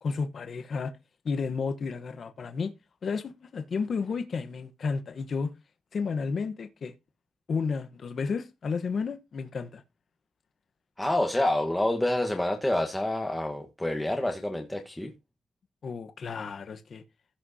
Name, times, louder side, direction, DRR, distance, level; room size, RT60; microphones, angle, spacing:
voice 1, 0.0-0.9 1.2-2.7 3.0-5.5 5.9-6.9 7.5-9.8 15.8-17.0, left 5 dB, 55° left, 1.0 m, -32 dB
voice 2, 11.0-15.1, left 1 dB, 10° left, 1.3 m, -27 dB
16.0 x 6.1 x 2.8 m
cardioid pair, 95°, 0 cm